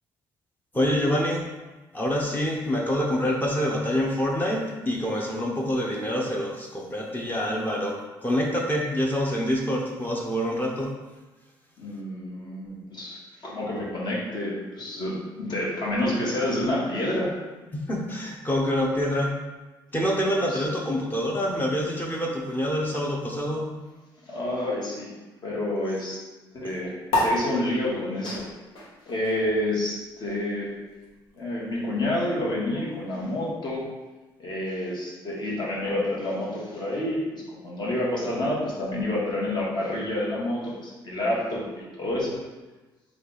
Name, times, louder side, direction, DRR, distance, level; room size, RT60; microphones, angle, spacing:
voice 1, 0.7-1.4 1.9-10.9 17.7-19.3 19.9-23.9 26.6-26.7, equal, 20° left, -2 dB, 0.7 m, -26 dB
voice 2, 11.8-17.3 20.5-20.6 24.3-25.1 25.4-26.2 26.5-28.5 29.1-30.7 31.3-33.9 34.4-42.4, left 1 dB, 50° left, -5 dB, 1.3 m, -28 dB
sound 1, 27.1-33.9, left 1 dB, 85° left, 1.0 m, -33 dB
3.4 x 2.4 x 3.9 m, 1.2 s
supercardioid pair, 75°, 10 cm